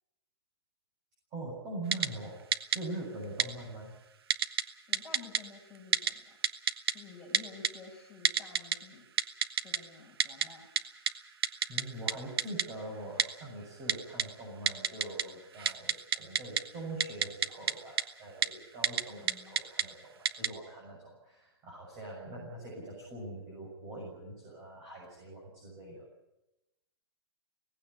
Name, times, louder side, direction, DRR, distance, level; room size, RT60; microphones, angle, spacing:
voice 1, 1.3-2.4 2.7-3.9 11.7-26.1, right 1 dB, 25° right, -3 dB, 7.1 m, -43 dB
Typing, 1.9-2.1 2.5-2.8 3.4-3.5 4.3-4.6 4.9-5.4 5.9-6.1 6.4-6.9 7.3-7.7 8.2-8.8 9.2-9.8 10.2-10.5 10.8-10.9 11.1-11.2 11.4-11.8 12.1-12.2 12.4-12.6 13.2-13.3 13.9-14.2 14.7-15.2 15.5-16.6 17.0-17.7 18.0-18.1 18.4-18.5 18.8-19.0 19.3-19.8 20.2-20.5, right 8 dB, 65° right, 1.3 m, -27 dB
voice 2, 4.9-6.4 6.9-9.1 9.6-10.7 19.2-19.6, left 4 dB, 5° left, -6 dB, 6.4 m, -51 dB
18.0 x 16.0 x 9.9 m, 0.92 s
hypercardioid pair, 160°, 14 cm